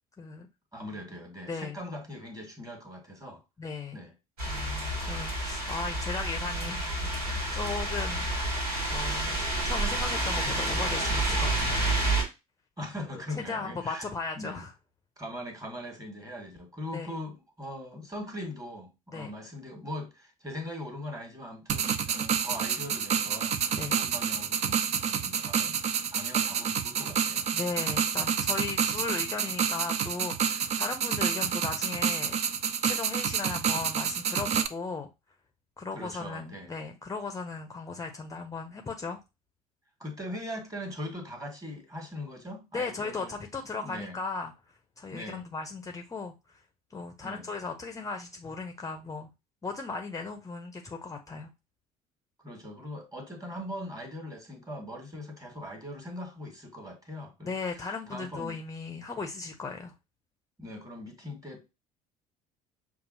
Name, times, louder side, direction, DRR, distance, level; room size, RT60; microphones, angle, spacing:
voice 1, 0.7-3.4 3.9-4.1 12.8-14.1 14.3-14.6 15.2-25.8 26.1-27.5 35.9-36.7 40.0-43.3 43.8-44.2 45.1-45.4 47.2-47.5 52.4-57.5 58.1-58.6 60.6-61.7, left 1 dB, 20° right, 1.5 m, -40 dB
voice 2, 1.5-1.8 3.6-4.0 4.5-8.6 8.9-9.4 9.6-11.9 13.5-14.7 16.9-17.1 19.1-19.3 23.7-24.0 27.5-32.4 32.8-35.1 35.8-39.2 42.7-44.5 45.0-46.6 46.9-49.3 49.6-51.5 57.4-59.9, left 4 dB, 15° left, 0.6 m, -37 dB
sound 1, 4.4-12.2, right 1 dB, 75° right, 1.9 m, -29 dB
sound 2, 21.7-34.7, right 7 dB, 35° right, 0.5 m, -29 dB
6.6 x 2.4 x 2.7 m
figure-of-eight pair, 55°, 19 cm